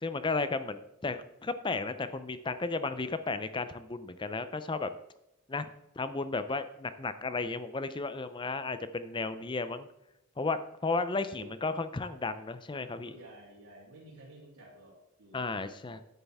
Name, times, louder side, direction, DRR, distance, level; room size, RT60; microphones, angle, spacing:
voice 1, 0.0-4.9 5.5-5.7 6.0-9.9 10.4-13.2 15.3-16.0, left 3 dB, 20° left, 12 dB, 0.5 m, -34 dB
voice 2, 13.0-16.0, right 1 dB, 85° right, -9 dB, 3.1 m, -53 dB
10.5 x 8.4 x 3.5 m, 0.88 s
head